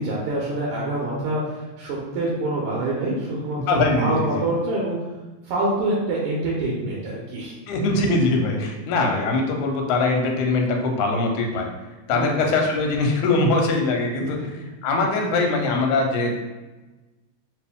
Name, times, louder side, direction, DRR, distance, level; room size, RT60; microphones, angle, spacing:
voice 1, 0.0-3.6 4.0-5.0 5.5-7.6 12.1-12.4 14.2-14.3 14.6-14.7, right 2 dB, 75° right, -4 dB, 1.4 m, -26 dB
voice 2, 3.6-4.4 7.7-11.7 12.1-14.4 14.8-16.3, left 3 dB, 90° left, 2 dB, 2.1 m, -22 dB
4.4 x 2.6 x 3.5 m, 1.2 s
omnidirectional pair, 3.3 m